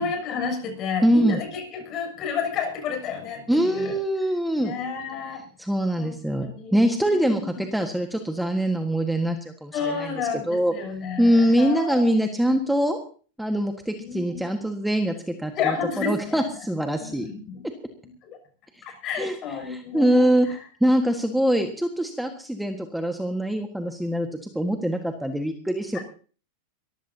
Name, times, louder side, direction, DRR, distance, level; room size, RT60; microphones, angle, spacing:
voice 1, 0.0-4.0 4.6-5.5 6.0-7.7 9.7-12.1 14.0-14.4 15.5-16.7 17.0-17.6 18.2-18.4 18.8-20.6 25.9-26.0, left 6 dB, 40° left, 4 dB, 6.7 m, -31 dB
voice 2, 1.0-1.4 3.5-4.7 5.7-9.4 9.6-10.1 10.5-10.7 11.2-13.0 13.4-15.7 16.0-17.3 19.2-19.3 19.7-24.3 24.5-26.0, equal, 5° right, 5 dB, 1.6 m, -23 dB
23.0 x 14.5 x 2.8 m, 0.40 s
hypercardioid pair, 110°, 0 cm